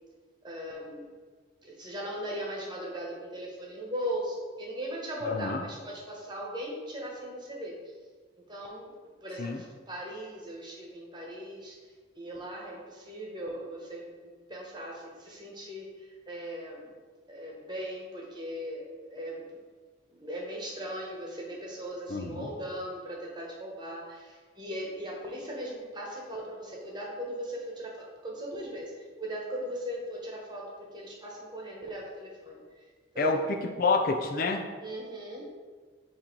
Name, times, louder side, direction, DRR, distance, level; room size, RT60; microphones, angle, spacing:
voice 1, 0.4-1.1 1.6-7.9 8.4-9.0 9.2-16.9 17.3-19.6 20.1-32.9 33.1-33.6 34.8-35.6, equal, 25° right, -2 dB, 1.1 m, -39 dB
voice 2, 5.2-5.6 9.4-9.6 22.1-22.5 33.2-34.6, left 3 dB, 50° left, 2 dB, 0.5 m, -28 dB
7.6 x 2.8 x 4.5 m, 1.5 s
head